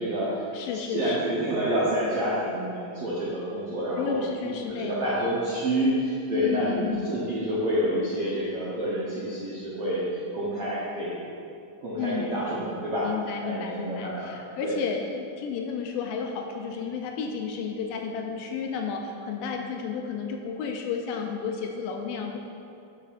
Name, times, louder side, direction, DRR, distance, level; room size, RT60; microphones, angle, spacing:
voice 1, 0.0-0.4 0.9-4.1 4.7-10.0 10.3-11.2 11.8-13.1 13.4-14.8, equal, 70° right, -9 dB, 1.4 m, -28 dB
voice 2, 0.5-1.2 4.0-5.4 6.3-7.2 12.0-12.3 13.0-22.4, left 6 dB, 80° left, 2 dB, 2.1 m, -32 dB
12.5 x 5.6 x 2.5 m, 2.6 s
omnidirectional pair, 4.0 m